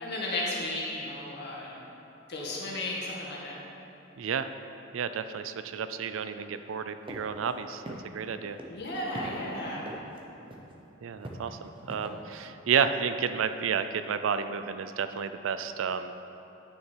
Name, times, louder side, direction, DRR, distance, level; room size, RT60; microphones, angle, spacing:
voice 1, 0.0-1.8 2.3-3.6 8.7-9.8, left 1 dB, 55° left, -4 dB, 1.9 m, -34 dB
voice 2, 4.2-4.5 4.9-7.8 8.1-8.6 11.0-11.6 11.9-16.1, right 6 dB, 75° right, 10 dB, 0.4 m, -31 dB
sound 1, 7.1-7.2 7.5-7.6 7.8-8.3 8.6-9.3 9.8-10.2 10.5-10.7 11.2-12.1, right 1 dB, 25° right, 0.8 m, -41 dB
9.7 x 6.5 x 4.6 m, 2.9 s
head